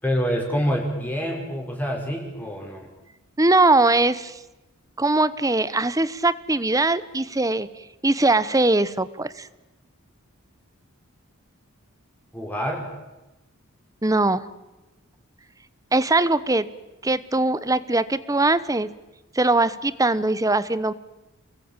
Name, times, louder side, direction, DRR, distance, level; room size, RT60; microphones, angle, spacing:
voice 1, 0.0-2.9 12.3-12.9, equal, 10° left, 0 dB, 5.4 m, -26 dB
voice 2, 3.4-4.4 5.0-7.7 8.0-9.5 14.0-14.5 15.9-16.7 17.0-18.9 19.3-20.9, right 2 dB, 15° right, 16 dB, 1.0 m, -21 dB
29.5 x 21.5 x 9.0 m, 1.0 s
head